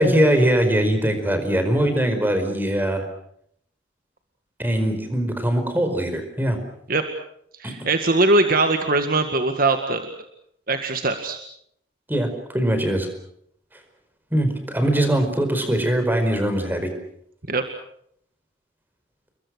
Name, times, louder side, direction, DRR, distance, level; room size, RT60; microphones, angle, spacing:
voice 1, 0.0-3.0 4.6-6.6 7.6-7.7 12.1-13.1 14.3-16.9, right 1 dB, 10° right, 7 dB, 4.9 m, -21 dB
voice 2, 7.6-10.1 10.7-11.4 17.5-17.6, right 2 dB, 50° right, 6 dB, 1.9 m, -21 dB
30.0 x 22.0 x 6.5 m, 0.70 s
head